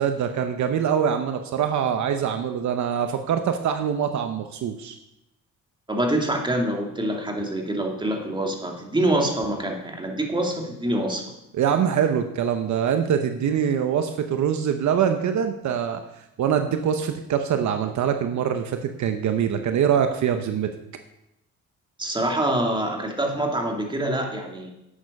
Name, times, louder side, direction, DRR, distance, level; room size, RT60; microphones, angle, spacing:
voice 1, 0.0-5.0 11.5-16.0 16.4-20.7, right 8 dB, 70° right, 6 dB, 1.0 m, -24 dB
voice 2, 5.9-11.2 22.0-24.7, right 1 dB, 15° right, 1 dB, 2.6 m, -25 dB
11.5 x 8.6 x 5.5 m, 0.87 s
cardioid pair, 90°, 30 cm